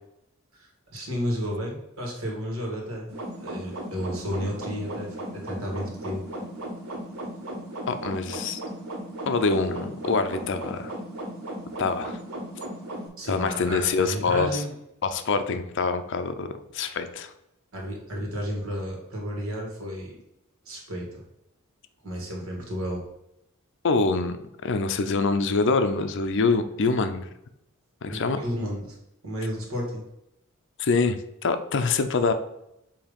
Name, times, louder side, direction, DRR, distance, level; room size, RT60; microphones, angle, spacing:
voice 1, 0.5-3.1 3.4-6.2 13.2-14.7 17.7-20.2 20.7-21.2 22.0-23.0 28.1-29.0 29.2-30.0, equal, 70° right, -1 dB, 2.0 m, -32 dB
sound 1, 3.1-13.1, right 1 dB, 90° right, 1.7 m, -36 dB
voice 2, 7.9-8.6 9.3-10.9 11.8-12.2 13.3-14.6 15.0-17.3 23.8-24.4 24.6-27.3 28.0-28.4 30.8-32.3, left 4 dB, 60° left, 9 dB, 0.5 m, -25 dB
7.2 x 2.9 x 5.1 m, 0.83 s
head